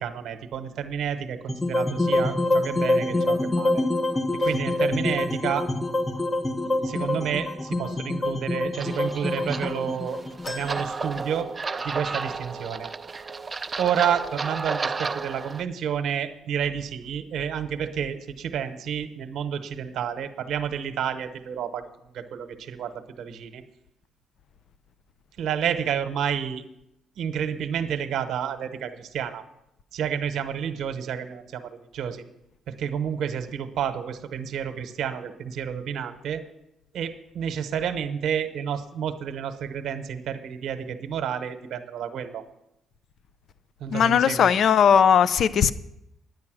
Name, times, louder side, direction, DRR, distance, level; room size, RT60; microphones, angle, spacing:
voice 1, 0.0-3.8 4.4-5.7 6.6-10.2 10.5-11.5 11.8-12.9 13.8-21.9 22.1-23.6 25.4-26.6 27.2-29.4 29.9-32.2 32.7-36.4 36.9-42.4 43.8-44.5, right 8 dB, 75° right, 9 dB, 1.0 m, -30 dB
sound 1, 1.5-11.7, left 1 dB, 20° left, 0.9 m, -26 dB
sound 2, 8.8-15.6, right 4 dB, 30° right, 0.5 m, -33 dB
sound 3, 10.4-12.1 12.5-12.6 13.8-13.9, left 2 dB, 40° left, 1.2 m, -42 dB
voice 2, 43.9-45.7, left 8 dB, 60° left, 17 dB, 0.4 m, -18 dB
9.6 x 9.5 x 6.2 m, 0.83 s
cardioid pair, 90°, 0 cm